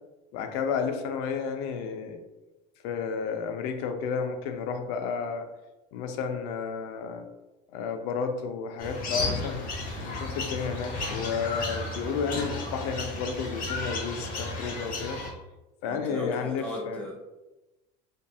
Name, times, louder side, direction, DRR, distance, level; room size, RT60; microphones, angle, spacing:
voice 1, 0.3-2.2 2.8-5.5 5.9-7.3 7.7-9.7 10.0-15.2 15.8-17.1, left 6 dB, 70° left, 6 dB, 0.5 m, -32 dB
sound 1, 8.8-15.3, left 2 dB, 45° left, 0.8 m, -33 dB
voice 2, 15.9-17.1, left 2 dB, 5° left, -3 dB, 0.8 m, -35 dB
2.6 x 2.5 x 2.2 m, 1.0 s
supercardioid pair, 100°, 21 cm